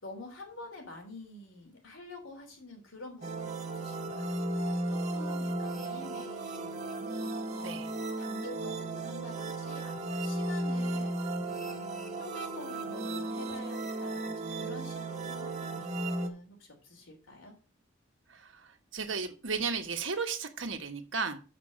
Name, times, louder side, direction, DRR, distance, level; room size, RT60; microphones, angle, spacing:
voice 1, 0.0-4.4 4.9-6.8 7.5-11.7 12.2-17.5, left 2 dB, 85° left, 2 dB, 3.4 m, -48 dB
sound 1, 3.2-16.3, right 2 dB, 35° right, 1.5 m, -35 dB
voice 2, 18.3-21.4, right 5 dB, 75° right, 6 dB, 1.4 m, -34 dB
7.3 x 5.9 x 6.3 m, 0.34 s
head